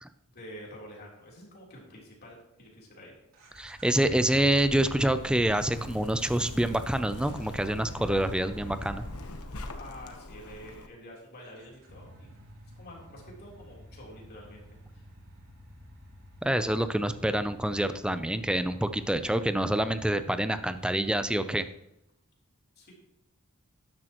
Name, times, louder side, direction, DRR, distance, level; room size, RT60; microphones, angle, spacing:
voice 1, 0.3-3.1 9.7-12.3 12.8-14.6 14.9-15.1 22.8-22.9, equal, 45° left, -2 dB, 3.6 m, -48 dB
sound 1, 3.3-9.7 11.5-21.6, equal, 70° right, 3.0 m, -46 dB
voice 2, 3.6-9.0 16.4-21.7, right 1 dB, 5° right, 11 dB, 0.5 m, -27 dB
Zipper (clothing), 4.2-10.9, left 1 dB, 85° left, 1.1 m, -44 dB
12.5 x 10.5 x 3.0 m, 0.85 s
head